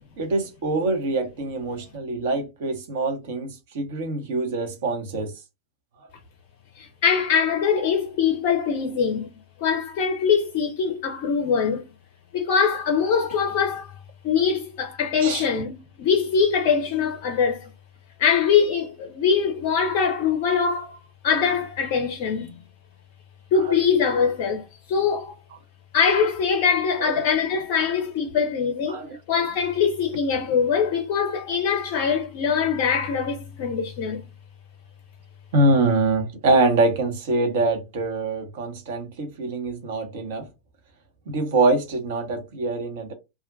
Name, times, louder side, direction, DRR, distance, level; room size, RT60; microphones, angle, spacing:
voice 1, 0.2-5.3 15.2-15.4 27.0-27.2 28.9-29.2 35.5-40.5 41.3-43.1, right 2 dB, 55° right, 0.8 m, -24 dB
voice 2, 6.8-11.9 12.3-13.9 14.2-17.7 18.2-21.0 21.2-22.6 23.5-25.4 25.9-29.0 29.3-34.2, left 6 dB, 45° left, 0.4 m, -23 dB
2.4 x 2.1 x 2.4 m
figure-of-eight pair, 90°, 0 cm